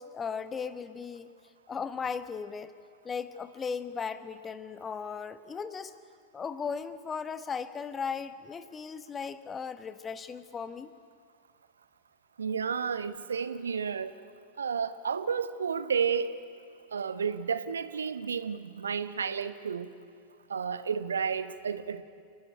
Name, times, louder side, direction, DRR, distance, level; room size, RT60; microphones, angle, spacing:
voice 1, 0.0-1.3 1.7-2.7 3.0-5.9 6.3-10.9, left 6 dB, 20° left, 13 dB, 1.0 m, -37 dB
voice 2, 12.4-14.2 14.6-16.3 16.9-19.9 20.5-22.0, right 6 dB, 70° right, 12 dB, 1.0 m, -31 dB
29.5 x 12.5 x 9.7 m, 2.2 s
figure-of-eight pair, 90°, 0 cm